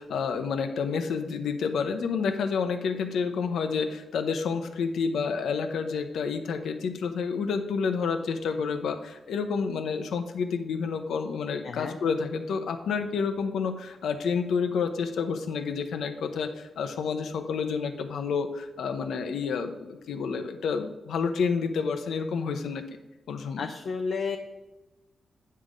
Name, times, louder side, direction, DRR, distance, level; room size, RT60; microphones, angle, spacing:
voice 1, 0.0-22.8 23.3-23.7, left 5 dB, 90° left, 7 dB, 0.9 m, -29 dB
voice 2, 11.6-12.0 23.6-24.4, left 5 dB, 65° left, 4 dB, 0.7 m, -31 dB
9.6 x 5.7 x 5.1 m, 1.1 s
wide cardioid pair, 135°, 0 cm